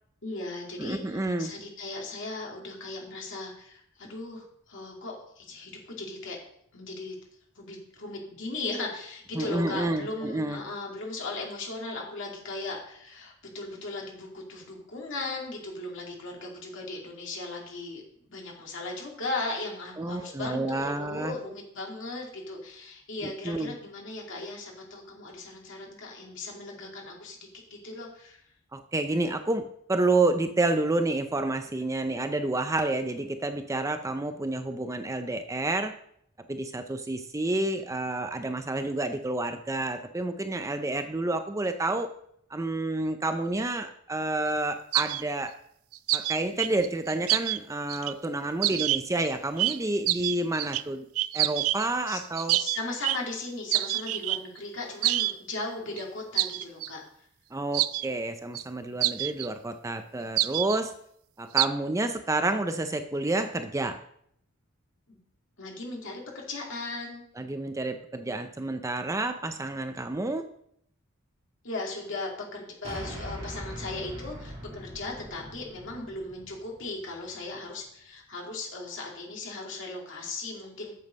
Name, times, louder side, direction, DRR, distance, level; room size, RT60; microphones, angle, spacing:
voice 1, 0.2-6.4 6.7-7.1 7.6-18.0 18.3-28.5 52.1-52.2 52.6-57.0 65.1-65.2 65.6-67.2 71.6-80.9, left 2 dB, 60° left, -1 dB, 2.6 m, -37 dB
voice 2, 0.8-1.5 8.8-8.9 9.3-10.6 20.0-21.4 23.2-23.7 28.7-35.9 36.5-42.1 42.5-45.6 46.1-51.1 51.3-52.6 57.5-60.9 61.4-64.0 67.4-70.5, right 2 dB, 15° right, 8 dB, 0.5 m, -29 dB
sound 1, 44.9-45.2 45.9-47.6 47.9-48.1 48.6-49.3 49.6-49.8 50.1-50.8 51.2-51.9 52.4-53.2 53.7-54.4 55.0-55.3 55.6-55.7 56.0-56.1 56.4-56.9 57.7-58.1 58.5-58.6 59.0-59.5 60.4-60.8 61.6-61.7, right 16 dB, 75° right, 0.3 m, -27 dB
sound 2, 72.8-77.3, equal, 30° right, 3.1 m, -41 dB
8.2 x 7.2 x 5.2 m, 0.69 s
head